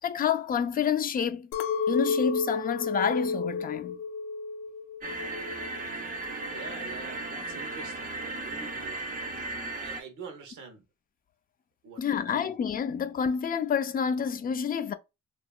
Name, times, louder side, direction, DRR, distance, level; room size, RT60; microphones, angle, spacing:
voice 1, 0.0-1.5 1.9-4.0 12.0-14.9, left 7 dB, 30° left, 0.3 m, -28 dB
Chink clink, 1.5-5.9 6.3-6.9, left 4 dB, 90° left, 0.5 m, -32 dB
sound 1, 5.0-10.0, right 2 dB, 30° right, 0.5 m, -36 dB
voice 2, 6.5-10.8 11.8-12.6, right 5 dB, 80° right, 0.8 m, -46 dB
2.8 x 2.3 x 2.3 m
cardioid pair, 90°, 30 cm